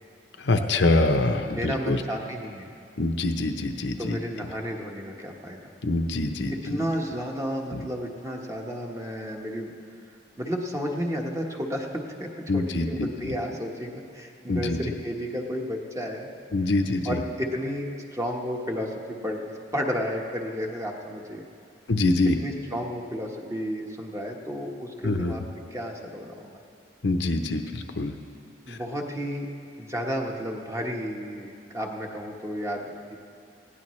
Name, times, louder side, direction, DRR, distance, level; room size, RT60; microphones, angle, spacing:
voice 1, 0.4-2.0 3.0-4.2 5.8-6.8 7.7-7.8 12.5-13.3 14.5-14.8 16.5-17.2 21.9-22.4 25.0-25.3 27.0-28.1 28.7-28.8, left 2 dB, 70° left, 5 dB, 0.8 m, -25 dB
voice 2, 1.5-2.7 4.0-5.7 6.6-9.7 10.4-16.3 17.0-17.8 18.1-21.4 22.4-25.4 25.7-26.6 28.6-29.5 29.8-33.2, equal, 15° right, 0 dB, 1.3 m, -32 dB
19.5 x 16.0 x 3.2 m, 2.4 s
head